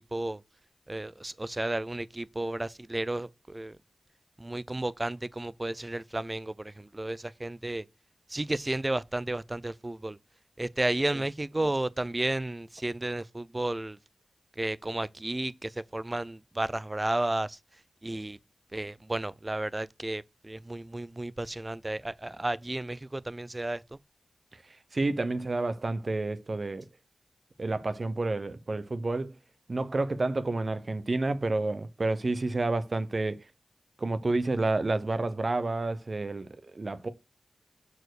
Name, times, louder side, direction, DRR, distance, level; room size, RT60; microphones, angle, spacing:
voice 1, 0.9-3.7 4.4-7.8 8.3-10.2 10.6-14.0 14.6-17.6 18.0-18.4 18.7-23.8, right 1 dB, 25° right, 0.5 m, -32 dB
voice 2, 24.9-26.8 27.6-29.4 29.7-33.4 34.0-37.1, right 2 dB, 45° right, 0.9 m, -30 dB
6.9 x 4.3 x 6.4 m
wide cardioid pair, 65°, 0 cm